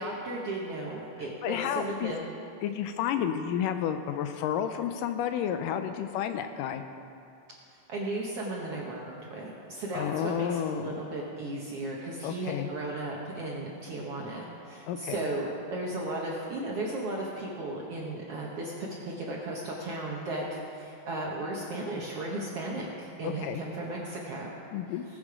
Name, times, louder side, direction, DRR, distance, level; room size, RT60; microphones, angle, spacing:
voice 1, 0.0-2.2 7.9-24.5, right 2 dB, 65° right, -3 dB, 1.5 m, -35 dB
voice 2, 1.2-2.1 2.6-6.8 9.9-11.0 12.2-12.7 14.9-15.2 23.2-23.6 24.7-25.0, left 9 dB, 80° left, 8 dB, 2.1 m, -31 dB
20.0 x 7.3 x 5.0 m, 2.6 s
omnidirectional pair, 4.1 m